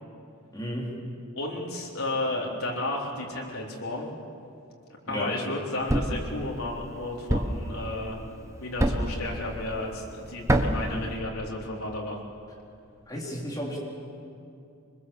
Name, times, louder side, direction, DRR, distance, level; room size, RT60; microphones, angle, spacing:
voice 1, 0.5-0.9 5.1-5.3 13.1-13.8, equal, 20° left, -3 dB, 4.0 m, -33 dB
voice 2, 1.4-4.1 5.1-8.2 8.6-12.2, left 2 dB, 85° left, -2 dB, 3.9 m, -33 dB
Thump thud, 5.9-6.3 7.3-7.7 8.8-9.2 10.5-10.9, right 1 dB, 15° right, 1.1 m, -24 dB
24.5 x 21.0 x 7.2 m, 2.5 s
head